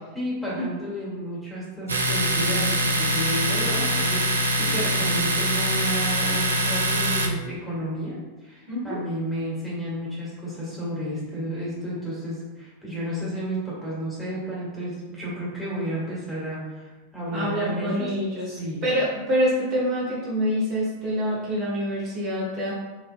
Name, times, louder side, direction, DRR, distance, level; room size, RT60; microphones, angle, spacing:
voice 1, 0.1-18.1 18.6-18.8, equal, ahead, -8 dB, 1.4 m, -32 dB
Domestic sounds home sounds, 1.9-7.3, right 1 dB, 75° right, 0.4 m, -23 dB
voice 2, 8.7-9.0 17.3-18.5 18.8-22.8, equal, 35° right, -6 dB, 1.0 m, -26 dB
4.2 x 2.4 x 2.4 m, 1.2 s
figure-of-eight pair, 90°, 0 cm